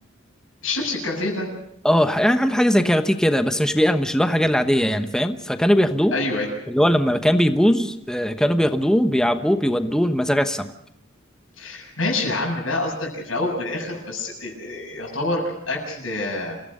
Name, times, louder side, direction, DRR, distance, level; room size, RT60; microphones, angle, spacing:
voice 1, 0.6-1.5 6.1-6.5 11.6-16.6, left 2 dB, 80° left, -1 dB, 7.2 m, -27 dB
voice 2, 1.8-6.1 6.7-10.7, equal, 5° left, 8 dB, 1.0 m, -20 dB
28.0 x 16.5 x 6.6 m, 0.74 s
head